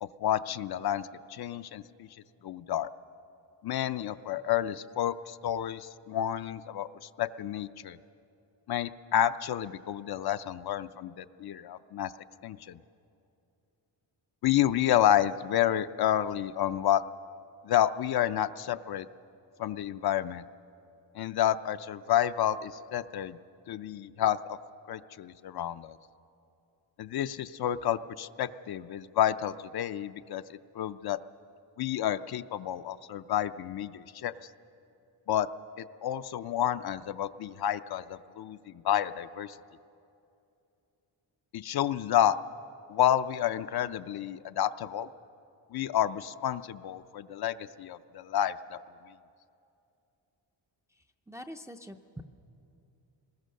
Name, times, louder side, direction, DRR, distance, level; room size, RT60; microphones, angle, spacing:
voice 1, 0.0-2.1 2.4-2.9 3.6-8.0 8.7-12.1 12.4-12.8 14.4-17.0 17.6-19.1 19.6-20.4 21.1-23.4 23.7-24.6 24.9-26.0 27.0-31.2 31.8-34.3 35.3-35.5 35.8-39.6 41.5-42.4 42.9-45.1 45.7-48.8, left 11 dB, 55° left, 11 dB, 0.5 m, -30 dB
voice 2, 50.9-52.2, equal, 5° right, 5 dB, 0.4 m, -45 dB
26.5 x 20.5 x 6.4 m, 2.7 s
wide cardioid pair, 170°, 46 cm